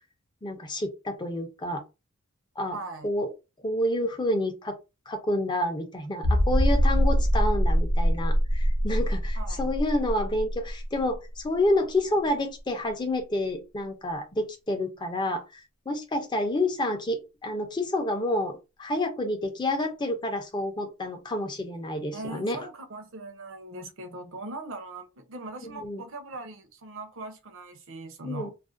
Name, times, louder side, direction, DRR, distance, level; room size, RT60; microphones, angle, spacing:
voice 1, 0.4-1.8 2.6-2.8 3.0-3.3 3.6-4.7 5.1-15.6 15.9-22.7 25.6-26.0 28.2-28.5, left 1 dB, 20° left, 0.4 m, -29 dB
voice 2, 2.7-3.1 9.4-9.7 22.1-28.5, right 2 dB, 60° right, 0.6 m, -40 dB
sound 1, 6.2-11.7 12.0-12.1 12.6-12.7, equal, 65° left, 0.5 m, -24 dB
2.4 x 2.1 x 2.4 m
head